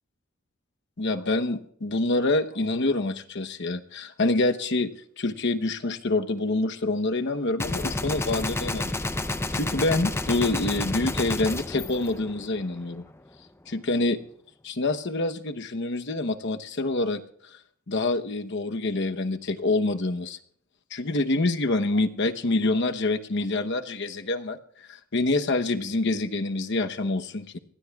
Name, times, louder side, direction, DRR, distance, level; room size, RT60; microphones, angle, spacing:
voice 1, 1.0-4.9 5.2-9.0 9.5-13.0 13.7-14.2 14.6-17.2 17.9-20.4 20.9-24.6 24.9-27.6, left 2 dB, 60° left, 7 dB, 0.9 m, -26 dB
Gunshot gunfire, 7.6-12.8, left 2 dB, 10° left, 0.6 m, -30 dB
28.5 x 20.0 x 2.4 m, 0.65 s
head